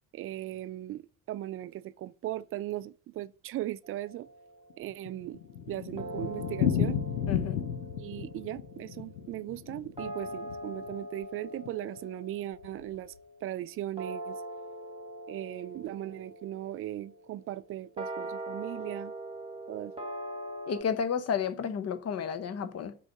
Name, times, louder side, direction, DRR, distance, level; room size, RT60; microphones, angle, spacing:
voice 1, 0.1-4.3 4.8-5.4 5.7-7.0 8.0-13.1 13.4-14.4 15.3-19.1 19.7-19.9, right 14 dB, 30° right, 0.4 m, -38 dB
sound 1, 3.8-5.2 6.0-20.8, right 1 dB, 15° right, 1.5 m, -43 dB
Thunder, 4.7-11.0 11.2-11.3 11.6-11.7 12.0-12.1 12.6-13.0, left 9 dB, 80° left, 0.8 m, -33 dB
voice 2, 7.3-7.6 20.7-23.0, left 7 dB, 35° left, 0.9 m, -32 dB
6.1 x 4.7 x 5.2 m
figure-of-eight pair, 55°, 44 cm